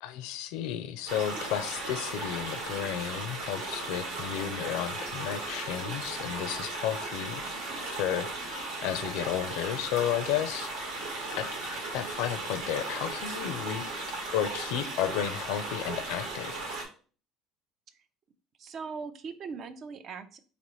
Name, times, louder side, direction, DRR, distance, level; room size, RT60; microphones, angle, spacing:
voice 1, 0.0-7.4 7.9-10.7 11.3-11.5 11.9-13.8 14.3-16.5, left 10 dB, 80° left, 11 dB, 0.4 m, -33 dB
sound 1, 1.1-16.8, right 2 dB, 85° right, 1.3 m, -36 dB
voice 2, 18.6-20.4, right 5 dB, 50° right, 10 dB, 0.5 m, -40 dB
4.1 x 2.9 x 3.1 m, 0.40 s
supercardioid pair, 100°, 0 cm